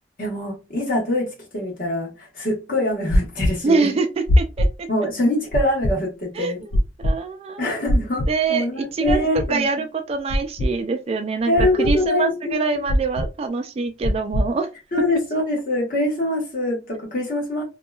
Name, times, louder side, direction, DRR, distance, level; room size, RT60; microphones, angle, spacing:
voice 1, 0.2-4.0 4.9-6.6 7.6-9.7 11.5-12.8 14.9-17.6, left 1 dB, 50° left, 1.2 m, -24 dB
sound 1, 3.1-3.5 4.3-4.7 5.5-5.9 6.7-7.1 7.9-8.3 9.1-9.5 10.3-10.7 11.6-12.0 12.9-13.3 14.0-14.5, left 1 dB, 75° left, 0.4 m, -19 dB
voice 2, 3.6-4.9 6.4-6.7 7.0-7.6 8.3-14.7, right 4 dB, 35° right, 0.3 m, -24 dB
2.8 x 2.3 x 2.3 m
head